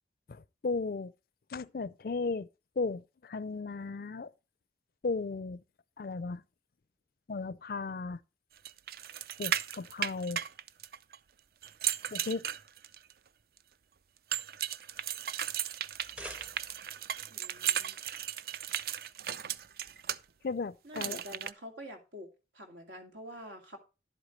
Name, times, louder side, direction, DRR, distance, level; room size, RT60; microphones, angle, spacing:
voice 1, 0.3-1.1 1.5-2.5 2.8-4.3 5.0-5.6 6.0-6.4 7.3-8.2 9.4-10.4 12.1-12.5 20.4-21.2, left 4 dB, 50° left, 0.4 m, -35 dB
sound 1, 8.7-11.2 11.6-13.1 14.3-20.2 21.0-21.5, right 10 dB, 55° right, 0.4 m, -36 dB
sound 2, 15.9-17.0, right 1 dB, 5° right, 0.6 m, -47 dB
voice 2, 17.3-18.0 20.8-23.8, equal, 85° right, 2.4 m, -47 dB
11.0 x 8.2 x 3.2 m
head